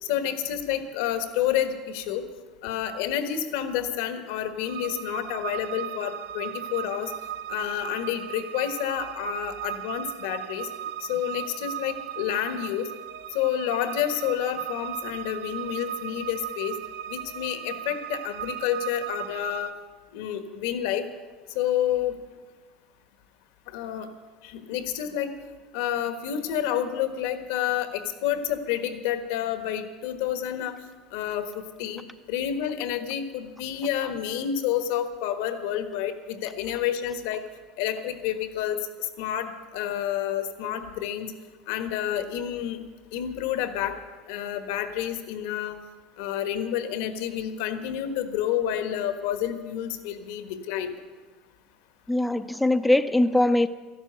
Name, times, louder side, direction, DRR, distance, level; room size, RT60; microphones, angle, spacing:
voice 1, 0.0-2.2 2.6-7.1 7.5-10.7 11.1-12.9 13.3-16.8 17.1-19.7 20.1-21.0 21.5-22.2 23.7-24.1 24.4-25.3 25.7-30.8 31.1-31.5 31.8-32.0 32.3-37.4 37.8-41.3 41.7-42.8 43.1-43.9 44.3-45.8 46.2-50.9, left 10 dB, 80° left, 8 dB, 1.4 m, -29 dB
sound 1, 4.6-19.7, right 11 dB, 80° right, 0.7 m, -37 dB
voice 2, 52.1-53.7, left 1 dB, 5° left, 9 dB, 0.5 m, -21 dB
13.0 x 12.0 x 8.0 m, 1.3 s
supercardioid pair, 125°, 0 cm